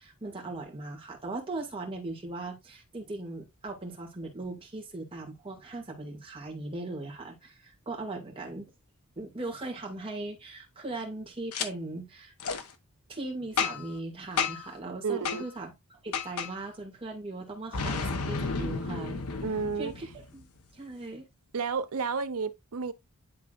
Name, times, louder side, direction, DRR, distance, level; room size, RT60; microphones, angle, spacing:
voice 1, 0.0-8.7 9.2-12.3 13.1-15.7 16.0-19.2 19.8-20.5 20.7-21.3, right 2 dB, 25° right, 2.3 m, -39 dB
Boom, 11.5-11.7 12.4-12.6 13.6-14.0 14.4-14.7 15.2-15.4 16.1-16.5 17.7-20.4, left 5 dB, 85° left, 1.0 m, -32 dB
voice 2, 15.0-15.4 19.4-19.9 21.5-22.9, right 5 dB, 70° right, 0.7 m, -31 dB
11.0 x 3.8 x 2.5 m
head